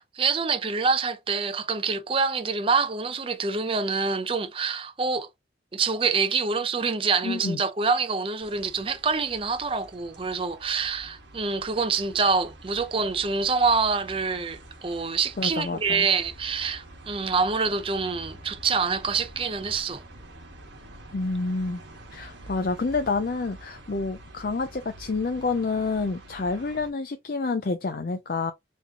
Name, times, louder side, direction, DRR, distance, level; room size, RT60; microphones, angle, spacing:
voice 1, 0.0-5.3 5.7-20.0, right 4 dB, 30° right, 0.5 m, -26 dB
voice 2, 7.2-7.6 15.4-16.1 21.1-21.8 22.1-28.5, left 3 dB, 50° left, 0.5 m, -28 dB
sound 1, 8.4-26.9, right 1 dB, 80° right, 1.5 m, -47 dB
4.3 x 3.0 x 2.8 m
head